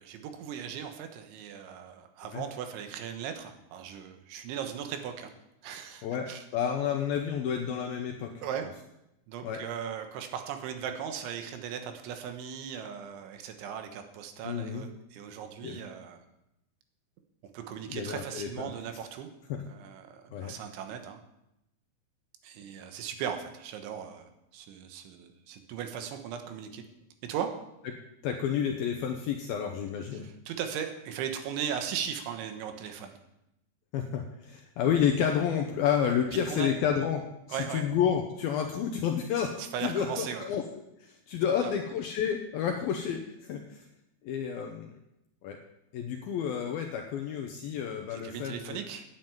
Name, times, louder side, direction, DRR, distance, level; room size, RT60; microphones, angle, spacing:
voice 1, 0.0-5.3 5.6-6.4 8.4-8.7 9.3-16.2 17.5-19.3 19.7-21.2 22.4-26.9 27.2-27.5 30.1-33.2 36.5-36.7 37.5-37.9 39.6-40.5 41.6-41.7 48.1-49.1, right 8 dB, 85° right, 6 dB, 3.6 m, -38 dB
voice 2, 6.0-8.3 9.4-9.6 14.4-14.8 15.6-15.8 17.9-18.7 19.5-19.7 20.3-20.5 28.2-30.3 33.9-37.2 37.5-39.5 39.8-40.6 41.0-43.8 44.2-45.0 45.4-45.6 45.9-48.8, left 8 dB, 80° left, 3 dB, 2.2 m, -30 dB
9.5 x 9.4 x 8.9 m, 0.86 s
omnidirectional pair, 5.4 m